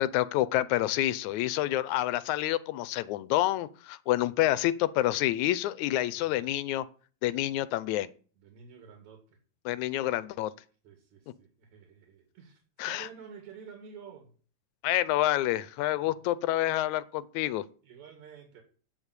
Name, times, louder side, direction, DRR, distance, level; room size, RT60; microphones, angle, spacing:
voice 1, 0.0-6.9 7.2-8.1 9.7-10.5 12.8-13.1 14.8-17.6, left 14 dB, 80° left, 17 dB, 2.0 m, -28 dB
voice 2, 6.1-6.5 8.4-9.4 10.8-14.3 16.0-16.1 17.8-18.6, right 6 dB, 70° right, 4 dB, 3.5 m, -50 dB
9.1 x 7.2 x 8.2 m, 0.41 s
omnidirectional pair, 3.4 m